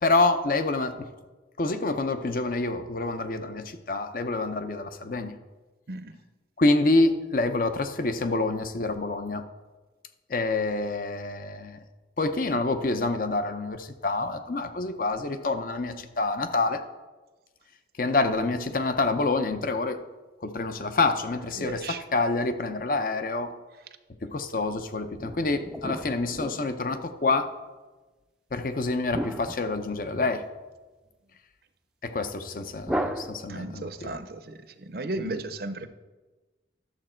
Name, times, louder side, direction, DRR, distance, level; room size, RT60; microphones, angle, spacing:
voice 1, 0.0-1.1 1.6-5.3 6.6-9.5 10.3-11.8 12.2-16.8 18.0-20.0 20.4-23.5 24.2-27.5 28.5-30.4 32.0-34.1 35.2-35.4, left 3 dB, 50° left, 9 dB, 0.6 m, -27 dB
voice 2, 21.6-22.0 33.5-35.9, right 2 dB, 55° right, 11 dB, 0.6 m, -35 dB
sound 1, 25.2-27.2 29.1-30.5 32.8-33.9, right 1 dB, 5° right, 0.4 m, -35 dB
11.5 x 7.0 x 4.4 m, 1.2 s
head